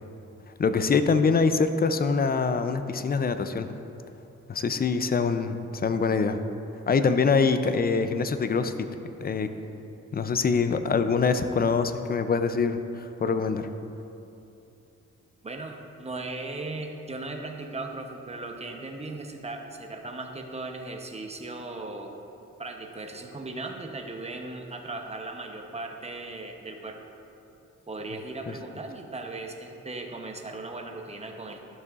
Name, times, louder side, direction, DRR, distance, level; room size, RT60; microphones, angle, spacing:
voice 1, 0.6-3.7 4.5-6.4 6.9-8.7 9.2-9.5 10.1-13.7, left 5 dB, 30° left, 10 dB, 0.5 m, -24 dB
voice 2, 15.4-22.1 22.6-27.0 27.9-31.6, right 2 dB, 20° right, 3 dB, 0.8 m, -37 dB
12.0 x 6.6 x 2.5 m, 2.8 s
cardioid pair, 75°, 30 cm